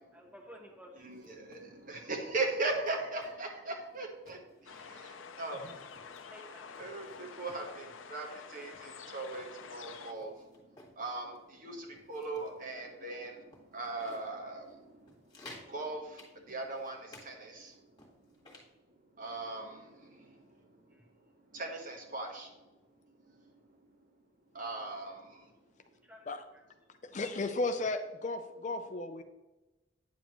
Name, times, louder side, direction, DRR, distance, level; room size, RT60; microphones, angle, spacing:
voice 1, 0.1-0.9 1.2-1.4 6.3-6.8 8.8-8.9 12.4-12.8 20.9-21.1 26.0-26.3 26.5-26.6, equal, 10° right, 2 dB, 1.0 m, -54 dB
sound 1, 0.9-1.6 2.0-2.1 2.6-3.6 3.8-4.0 4.2-5.0 5.5-6.3 6.7-7.6 8.2-8.3 8.7-11.0 11.4-11.6 12.0-12.6 13.0-13.1 13.5-14.3 14.7-14.8 15.1-15.7 16.1-17.3 17.6-18.7, left 2 dB, 20° left, 1.8 m, -56 dB
voice 2, 1.0-5.8 6.8-10.7 11.0-15.4 15.7-17.9 18.2-18.3 19.1-20.6 20.8-21.0 21.5-22.7 23.0-23.6 23.9-24.0 24.5-25.5, right 2 dB, 45° right, 2 dB, 1.3 m, -40 dB
sound 2, 4.7-10.1, left 5 dB, 80° left, 0.6 m, -49 dB
voice 3, 27.0-29.2, left 2 dB, 40° left, 7 dB, 0.5 m, -34 dB
9.2 x 7.1 x 3.0 m, 1.1 s
head